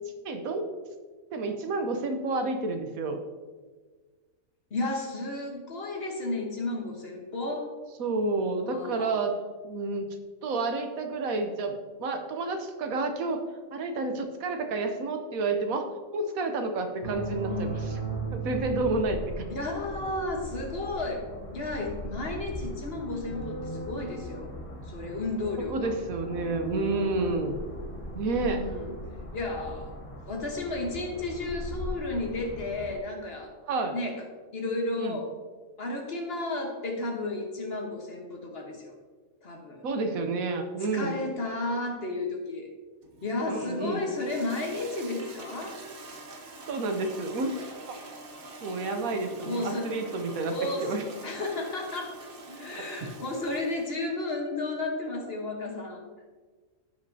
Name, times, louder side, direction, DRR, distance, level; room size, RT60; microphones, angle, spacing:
voice 1, 0.2-0.6 1.3-3.2 8.0-9.4 9.6-10.1 10.4-11.7 12.0-13.4 13.7-17.7 18.3-19.2 25.7-27.6 28.1-28.7 33.7-34.0 35.0-35.2 39.8-41.1 43.5-44.1 46.7-47.5 48.6-50.5 50.8-51.0 52.7-53.1, right 3 dB, 75° right, 6 dB, 1.3 m, -30 dB
voice 2, 4.7-7.7 8.6-9.3 17.5-17.7 19.5-21.2 21.5-24.5 24.8-26.0 28.3-28.9 29.3-29.9 30.3-33.5 33.9-34.2 34.5-35.3 35.8-38.9 39.4-39.9 40.8-42.7 43.2-45.8 49.5-49.9 50.5-52.2 52.5-56.1, left 2 dB, 45° left, 1 dB, 1.4 m, -33 dB
sound 1, 17.0-33.0, right 1 dB, 30° left, 0.8 m, -38 dB
Toilet flush, 43.0-54.1, right 2 dB, 45° right, 0.9 m, -45 dB
15.0 x 5.2 x 2.7 m, 1.4 s
omnidirectional pair, 1.5 m